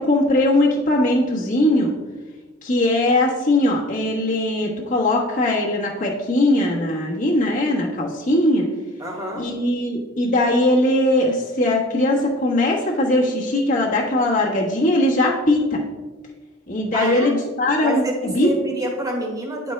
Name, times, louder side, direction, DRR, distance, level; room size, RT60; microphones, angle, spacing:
voice 1, 0.0-2.0 2.6-8.7 9.3-15.8 16.7-18.8, left 1 dB, 40° left, -4 dB, 1.3 m, -20 dB
voice 2, 9.0-9.5 16.9-17.3 17.8-19.7, right 1 dB, 15° right, 0 dB, 1.3 m, -28 dB
10.0 x 4.5 x 3.2 m, 1.3 s
head